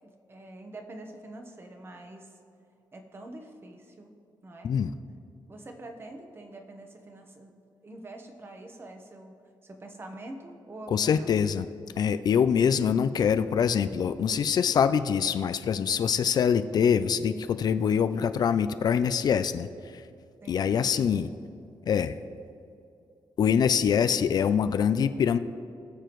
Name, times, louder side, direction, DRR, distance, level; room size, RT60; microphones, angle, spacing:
voice 1, 0.0-2.4 2.9-4.2 4.4-4.7 5.5-9.3 9.6-11.3 20.4-21.2, right 1 dB, 30° right, 4 dB, 1.0 m, -45 dB
voice 2, 10.9-11.7 12.0-19.7 19.9-20.0 20.5-21.3 21.9-22.2 23.4-25.4, left 7 dB, 55° left, 12 dB, 0.4 m, -24 dB
20.5 x 6.9 x 3.1 m, 2.5 s
wide cardioid pair, 150°, 8 cm